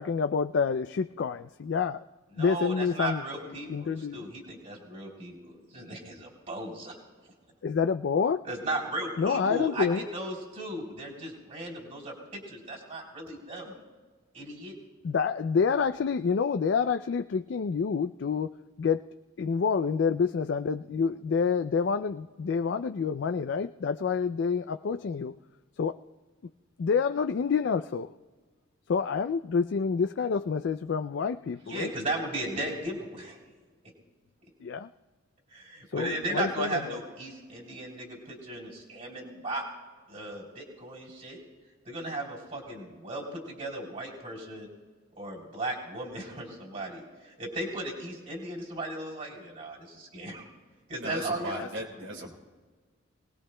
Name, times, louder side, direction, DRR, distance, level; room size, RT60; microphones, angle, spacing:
voice 1, 0.0-2.0 2.4-3.2 3.5-4.2 7.6-8.5 9.2-10.1 15.0-19.1 19.4-25.4 25.8-26.0 26.8-28.1 28.9-31.9 34.6-34.9 35.9-37.0 51.5-51.7, left 5 dB, 60° left, 9 dB, 0.3 m, -28 dB
voice 2, 2.3-7.0 8.5-13.7 14.3-14.7 31.7-33.4 35.5-39.6 40.1-41.4 41.8-44.7 45.2-50.5 50.9-51.5, right 2 dB, 40° right, -4 dB, 3.3 m, -36 dB
voice 3, 51.0-52.3, right 1 dB, 80° right, 1 dB, 3.9 m, -37 dB
28.0 x 19.0 x 2.2 m, 1.4 s
head